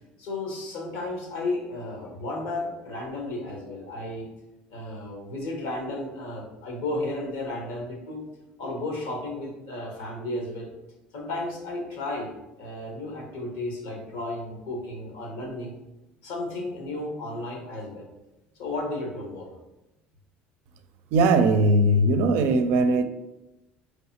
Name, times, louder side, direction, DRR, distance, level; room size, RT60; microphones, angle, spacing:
voice 1, 0.2-4.3 4.7-8.3 8.6-10.7 11.1-15.7 16.2-18.0 18.5-19.5, left 2 dB, 80° left, 0 dB, 1.2 m, -33 dB
voice 2, 21.1-23.0, right 2 dB, 70° right, 9 dB, 0.4 m, -20 dB
4.9 x 3.2 x 2.8 m, 0.98 s
supercardioid pair, 110°, 4 cm